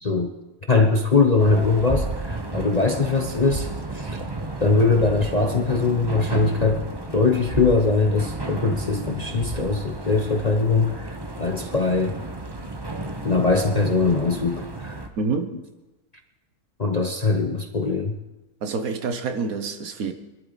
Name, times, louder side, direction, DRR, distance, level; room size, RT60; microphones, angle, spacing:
voice 1, 0.0-0.3 0.7-4.2 4.6-12.2 13.2-15.0 16.8-18.2, left 3 dB, 35° left, 3 dB, 0.8 m, -21 dB
sound 1, 1.4-15.1, right 2 dB, 20° right, 0.9 m, -32 dB
voice 2, 15.2-15.5 18.6-20.1, right 4 dB, 65° right, 7 dB, 1.4 m, -27 dB
23.0 x 12.5 x 4.0 m, 1.1 s
omnidirectional pair, 1.7 m